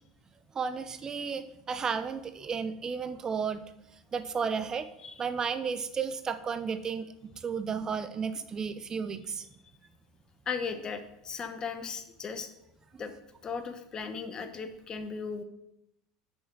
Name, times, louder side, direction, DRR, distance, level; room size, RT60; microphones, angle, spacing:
voice 1, 0.5-3.6 4.1-4.9 5.2-9.5, right 6 dB, 30° right, 11 dB, 0.6 m, -33 dB
voice 2, 10.5-12.5 13.0-13.1 13.4-15.4, left 5 dB, 35° left, 9 dB, 1.1 m, -37 dB
7.1 x 5.5 x 6.4 m, 0.83 s
hypercardioid pair, 85°, 2 cm